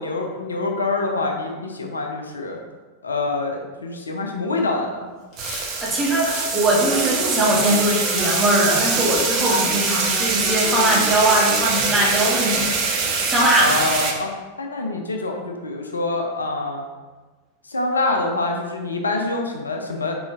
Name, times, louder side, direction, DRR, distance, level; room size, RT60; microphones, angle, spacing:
voice 1, 0.0-2.6 3.0-5.1 13.6-14.3 14.6-16.9 17.6-20.1, left 2 dB, 75° left, 2 dB, 0.5 m, -25 dB
Hiss, 5.3-5.8 6.2-6.8 7.5-8.5, left 1 dB, 35° left, 1.5 m, -35 dB
sound 1, 5.4-14.1, right 4 dB, 40° right, 0.7 m, -23 dB
voice 2, 5.8-12.7 13.2-13.9, right 1 dB, 15° right, -4 dB, 1.2 m, -20 dB
Wind instrument woodwind instrument, 6.8-12.5, left 1 dB, ahead, 0.4 m, -35 dB
4.9 x 4.0 x 2.5 m, 1.3 s
figure-of-eight pair, 90°, 0 cm